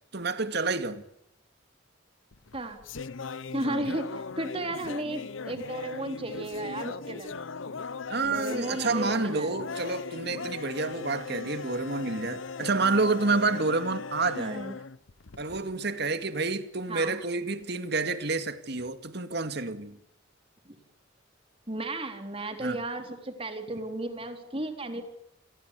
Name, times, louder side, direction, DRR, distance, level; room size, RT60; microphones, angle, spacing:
voice 1, 0.1-1.0 3.7-3.8 8.1-14.6 15.4-20.0 22.6-22.8, right 3 dB, 55° right, 2.3 m, -29 dB
sound 1, 2.3-15.8, left 4 dB, 80° left, 0.9 m, -39 dB
voice 2, 3.5-7.3 8.2-9.7 14.4-14.8 16.9-17.2 20.7-20.8 21.7-25.0, right 2 dB, 30° right, 3.9 m, -34 dB
28.5 x 18.5 x 8.5 m
head